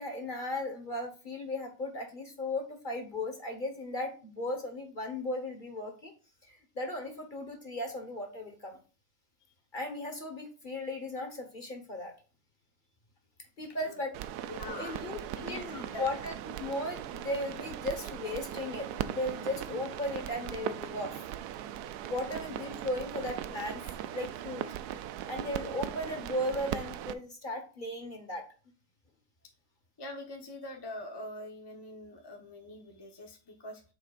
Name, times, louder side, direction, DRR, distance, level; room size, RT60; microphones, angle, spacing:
voice 1, 0.0-6.1 6.4-8.8 9.7-12.1 13.6-14.1 14.6-16.3 16.6-21.2 22.1-23.8 24.1-24.6 25.3-28.4, left 1 dB, 35° left, 4 dB, 1.3 m, -36 dB
sound 1, 14.1-27.1, right 11 dB, 80° right, 1.1 m, -39 dB
voice 2, 14.5-16.1 30.0-33.8, left 1 dB, 20° left, 2 dB, 1.0 m, -44 dB
8.4 x 7.1 x 2.5 m, 0.35 s
omnidirectional pair, 1.7 m